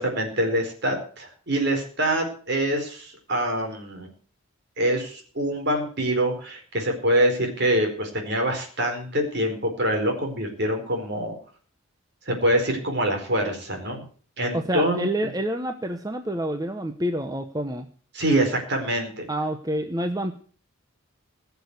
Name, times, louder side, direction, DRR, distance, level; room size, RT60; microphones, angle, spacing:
voice 1, 0.0-4.1 4.8-11.3 12.3-14.0 14.4-15.1 18.1-19.2, right 1 dB, 50° right, 3 dB, 4.5 m, -25 dB
voice 2, 14.5-17.9 19.3-20.3, right 1 dB, 15° right, 7 dB, 0.8 m, -28 dB
17.5 x 7.0 x 8.2 m, 0.44 s
head